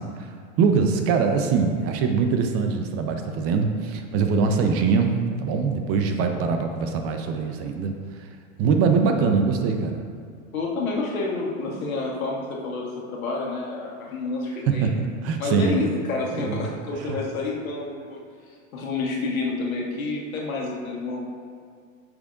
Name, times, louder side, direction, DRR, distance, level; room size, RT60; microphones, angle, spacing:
voice 1, 0.0-8.3 8.6-10.0 14.7-14.9 15.2-15.9 16.4-16.6 17.0-17.2, right 5 dB, 35° right, 5 dB, 0.7 m, -23 dB
voice 2, 10.5-14.9 15.4-21.2, left 3 dB, 80° left, -2 dB, 1.7 m, -29 dB
8.3 x 6.2 x 2.5 m, 2.1 s
hypercardioid pair, 110°, 41 cm